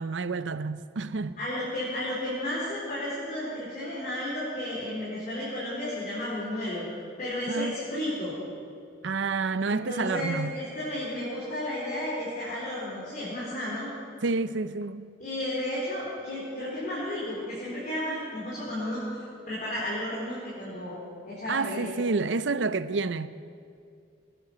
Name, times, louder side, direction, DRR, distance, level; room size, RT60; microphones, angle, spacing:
voice 1, 0.0-1.4 7.5-7.8 9.0-10.5 14.2-15.1 21.5-23.3, right 4 dB, 80° right, 0.6 m, -29 dB
voice 2, 1.4-6.8 7.2-8.3 9.6-13.9 15.2-19.0 19.5-21.0 21.3-21.9, left 1 dB, 45° left, 4.3 m, -33 dB
20.0 x 10.0 x 7.0 m
head